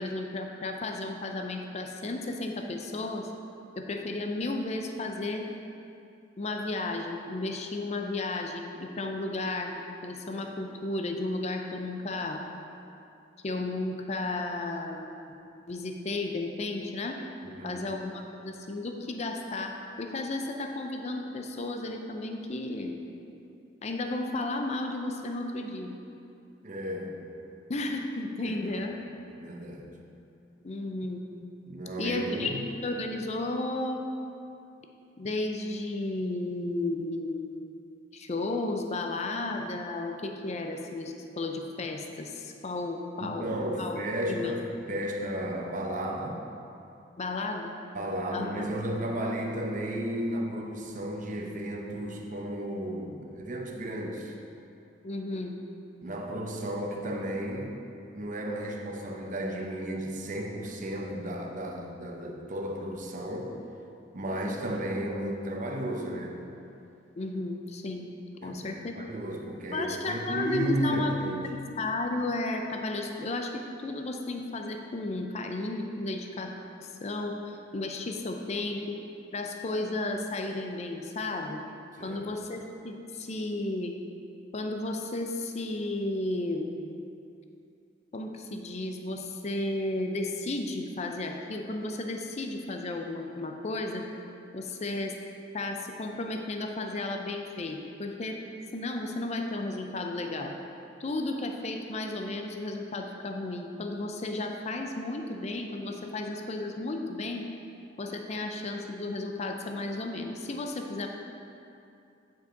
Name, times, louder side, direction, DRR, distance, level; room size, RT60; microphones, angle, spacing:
voice 1, 0.0-3.3 3.8-5.5 6.4-12.4 13.4-15.1 15.7-17.2 17.6-23.0 23.8-26.0 27.7-29.0 30.6-31.3 32.0-32.5 32.8-34.0 35.2-37.7 38.1-44.0 44.3-44.6 47.2-47.7 48.3-48.7 55.0-55.6 67.2-68.1 68.4-68.9 69.7-71.1 71.5-76.5 76.8-77.4 77.7-79.0 79.3-81.6 82.0-83.9 84.5-86.9 88.1-94.1 94.5-95.1 95.5-98.4 98.7-100.5 101.0-107.4 108.0-111.1, left 2 dB, 35° left, 4 dB, 0.5 m, -33 dB
voice 2, 17.4-17.8 26.6-27.2 28.5-28.6 29.4-29.9 31.7-32.6 43.2-46.4 47.9-54.3 56.0-57.7 58.1-63.5 64.1-66.4 68.4-71.4 82.0-82.2, right 1 dB, 40° right, 1 dB, 0.8 m, -33 dB
9.1 x 5.5 x 3.9 m, 2.7 s
head